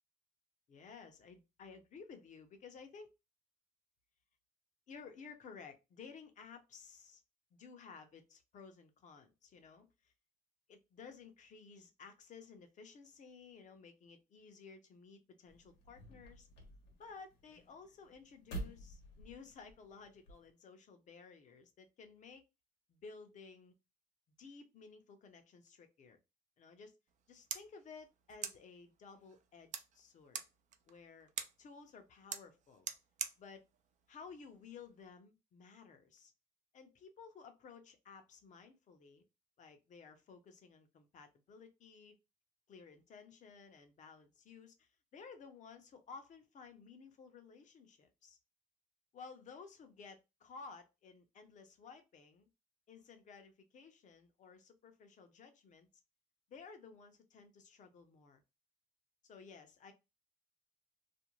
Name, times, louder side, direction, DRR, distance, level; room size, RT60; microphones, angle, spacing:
voice 1, 0.7-3.1 4.9-7.2 7.5-10.1 10.7-16.5 17.0-22.4 22.9-23.7 24.4-26.2 26.6-27.0 27.3-30.4 30.9-31.3 31.6-32.9 33.4-33.7 34.1-36.3 36.7-39.2 39.6-42.2 42.7-48.4 49.1-52.5 52.9-55.9 56.5-58.4 59.2-59.9, left 5 dB, 45° left, 0.7 m, -55 dB
sound 1, 15.5-20.5, right 2 dB, 85° left, 1.0 m, -50 dB
sound 2, 27.1-35.1, right 8 dB, 45° right, 0.4 m, -48 dB
2.5 x 2.1 x 3.0 m
cardioid pair, 110°, 17 cm